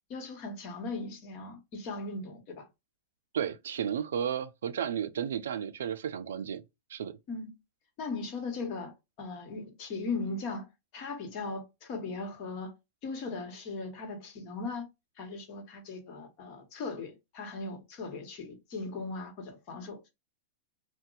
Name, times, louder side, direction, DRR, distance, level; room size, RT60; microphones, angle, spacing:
voice 1, 0.1-2.7 7.3-7.6 8.0-10.7 10.9-12.7 13.0-14.9 15.2-20.1, left 3 dB, 45° left, 1.3 m, -38 dB
voice 2, 3.3-6.6 6.9-7.2, right 8 dB, 85° right, 0.4 m, -33 dB
2.8 x 2.2 x 3.8 m
hypercardioid pair, 130°, 0 cm